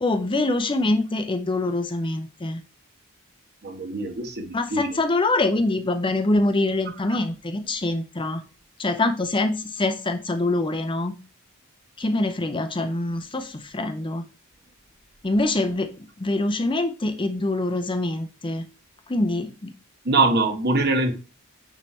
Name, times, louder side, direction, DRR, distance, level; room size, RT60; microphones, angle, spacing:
voice 1, 0.0-2.6 4.5-8.4 8.8-11.2 12.0-14.2 15.2-15.9 16.2-18.6 19.1-19.5, left 2 dB, 20° left, 0.6 m, -24 dB
voice 2, 3.6-5.0 20.0-21.2, right 2 dB, 45° right, 1.2 m, -23 dB
9.0 x 3.3 x 4.3 m
head